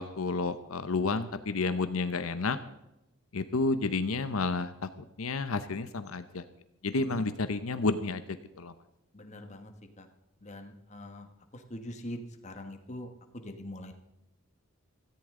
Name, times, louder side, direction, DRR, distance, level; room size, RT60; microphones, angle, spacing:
voice 1, 0.0-2.6 3.3-6.4 6.8-8.2 8.6-8.7, left 3 dB, 85° left, 11 dB, 0.8 m, -30 dB
voice 2, 9.1-10.1 10.4-13.1 13.3-13.9, left 1 dB, 35° left, 6 dB, 1.4 m, -43 dB
17.0 x 14.0 x 3.8 m, 0.89 s
head